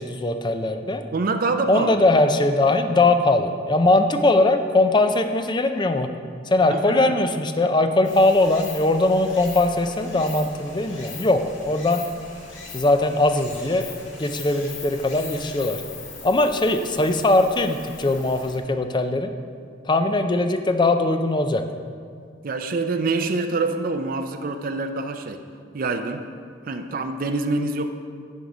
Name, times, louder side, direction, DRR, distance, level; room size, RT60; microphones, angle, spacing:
voice 1, 0.0-1.0 1.7-6.1 6.5-12.0 12.7-13.8 14.2-15.8 16.2-19.3 19.9-21.6, left 2 dB, 25° left, 7 dB, 0.5 m, -20 dB
voice 2, 1.1-2.0 6.7-7.1 22.4-25.4 25.7-26.3 26.7-27.9, right 3 dB, 50° right, 6 dB, 0.5 m, -26 dB
Stream, 8.0-18.6, left 4 dB, 85° left, 1.9 m, -40 dB
10.0 x 5.3 x 4.9 m, 2.2 s
head